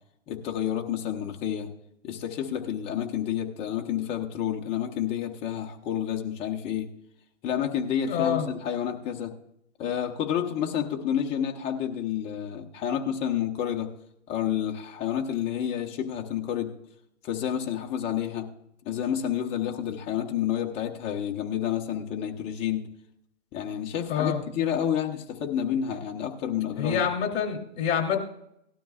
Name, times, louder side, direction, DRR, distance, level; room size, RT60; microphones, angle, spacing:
voice 1, 0.3-1.7 2.0-6.9 7.4-9.3 9.8-13.9 14.3-16.7 17.2-18.5 18.8-22.9 23.5-27.0, left 9 dB, 15° left, 2 dB, 0.8 m, -29 dB
voice 2, 8.1-8.5 24.1-24.4 26.8-28.2, left 8 dB, 45° left, 3 dB, 3.2 m, -26 dB
18.0 x 12.5 x 2.4 m, 0.77 s
hypercardioid pair, 155°, 38 cm